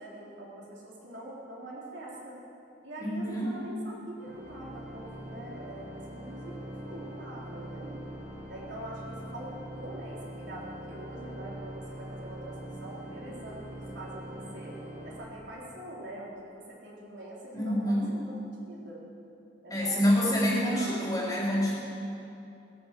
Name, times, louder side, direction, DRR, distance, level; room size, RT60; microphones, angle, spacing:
voice 1, 0.0-2.4 2.8-8.0 8.5-9.5 9.8-14.8 15.0-19.0 19.6-21.2, right 1 dB, 70° right, -5 dB, 4.0 m, -44 dB
voice 2, 3.0-3.5 17.5-18.1 19.7-21.7, equal, 20° left, -5 dB, 3.8 m, -27 dB
Organ, 4.2-16.0, right 1 dB, 40° right, 1.7 m, -43 dB
17.5 x 10.5 x 7.8 m, 2.7 s
head